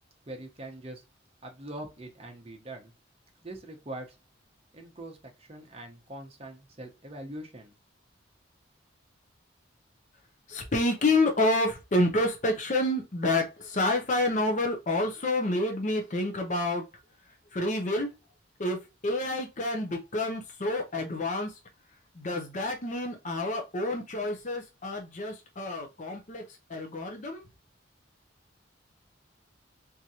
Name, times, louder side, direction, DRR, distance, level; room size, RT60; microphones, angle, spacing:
voice 1, 0.3-1.0 1.4-2.9 3.4-4.2 4.7-7.7, right 1 dB, 30° right, 0.9 m, -42 dB
voice 2, 10.5-16.8 17.5-18.1 18.6-21.5 22.2-26.4 26.7-27.4, left 2 dB, 40° left, 0.6 m, -28 dB
3.6 x 3.0 x 2.7 m
head